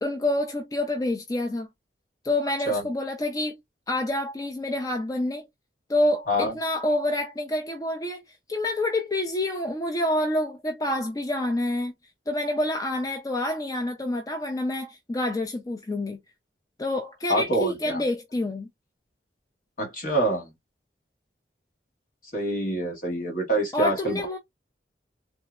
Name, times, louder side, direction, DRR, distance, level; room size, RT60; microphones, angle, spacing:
voice 1, 0.0-1.7 2.2-3.6 3.9-5.5 5.9-11.9 12.3-16.2 16.8-18.7 23.7-24.4, left 1 dB, 20° left, 0.4 m, -27 dB
voice 2, 17.3-18.0 19.8-20.5 22.3-24.2, right 1 dB, 50° left, 1.2 m, -26 dB
3.6 x 2.0 x 2.3 m
head